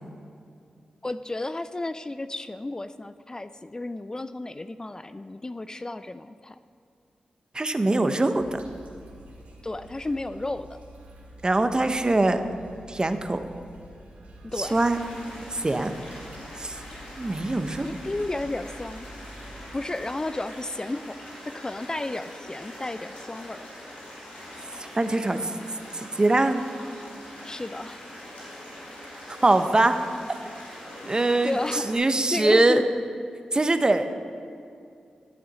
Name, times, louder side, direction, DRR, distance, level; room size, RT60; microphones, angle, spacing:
voice 1, 1.0-6.6 9.6-10.8 14.4-14.7 17.8-19.1 19.7-21.2 21.5-23.6 27.4-28.0 31.4-32.0 32.3-32.8, left 2 dB, 25° left, 12 dB, 0.3 m, -33 dB
voice 2, 7.5-8.6 11.4-12.4 12.9-13.4 14.6-15.0 15.5-15.9 16.6-16.8 17.2-17.9 25.0-25.4 26.0-26.6 29.3-30.0 31.1-31.5 31.9-32.8 33.5-34.1, right 2 dB, 35° right, 9 dB, 0.8 m, -22 dB
sound 1, 8.3-19.6, right 1 dB, 90° right, 1.7 m, -47 dB
sound 2, 14.6-32.0, left 1 dB, 85° left, 2.8 m, -43 dB
13.5 x 7.7 x 4.1 m, 2.4 s
supercardioid pair, 40°, 3 cm